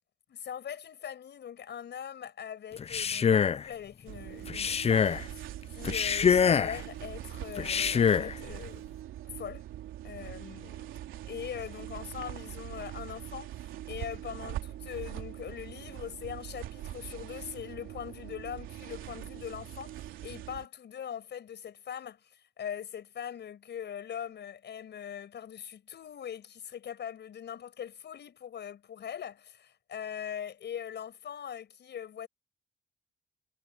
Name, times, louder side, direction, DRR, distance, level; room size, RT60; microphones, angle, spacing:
voice 1, 0.3-8.8 9.2-9.6 10.0-10.9 11.3-32.3, left 9 dB, 60° left, 6.6 m, -41 dB
Male speech man speaking, 2.8-3.7 4.5-5.2 5.8-6.8 7.6-8.3, left 7 dB, 30° left, 0.5 m, -25 dB
sound 1, 4.1-20.7, right 13 dB, 85° right, 3.1 m, -42 dB
cardioid pair, 90°, 20 cm